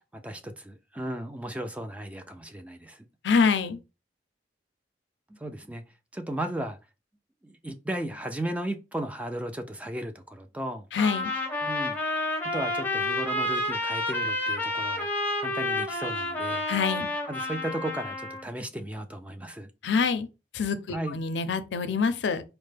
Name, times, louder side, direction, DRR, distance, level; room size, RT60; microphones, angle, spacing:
voice 1, 0.1-3.1 5.3-5.8 6.1-6.8 7.4-10.9 11.6-16.6 17.3-19.7 20.9-21.2, right 1 dB, 10° right, 0.3 m, -35 dB
voice 2, 3.2-3.8 10.9-11.3 16.7-17.1 19.8-20.3 20.5-22.4, left 5 dB, 85° left, 0.5 m, -25 dB
Trumpet, 11.0-18.4, left 2 dB, 10° left, 0.7 m, -30 dB
4.2 x 2.0 x 3.3 m
head